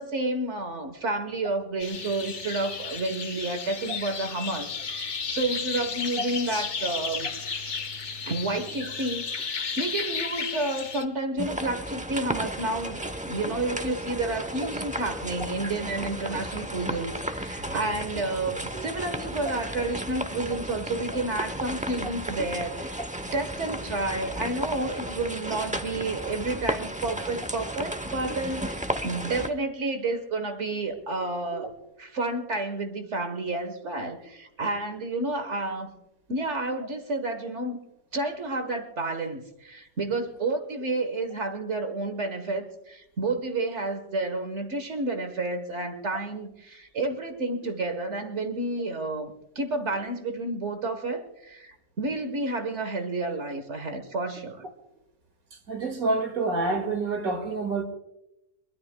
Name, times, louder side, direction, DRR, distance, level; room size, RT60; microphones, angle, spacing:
voice 1, 0.0-7.3 8.2-23.1 23.3-31.7 32.0-35.9 36.3-37.8 38.1-54.6, right 2 dB, 55° right, 1.5 m, -30 dB
sound 1, 1.8-11.0, left 5 dB, 55° left, 1.4 m, -33 dB
sound 2, 11.4-29.5, right 1 dB, 10° right, 0.4 m, -34 dB
voice 2, 55.7-57.8, right 3 dB, 85° right, 2.5 m, -27 dB
23.0 x 21.5 x 2.2 m
omnidirectional pair, 1.5 m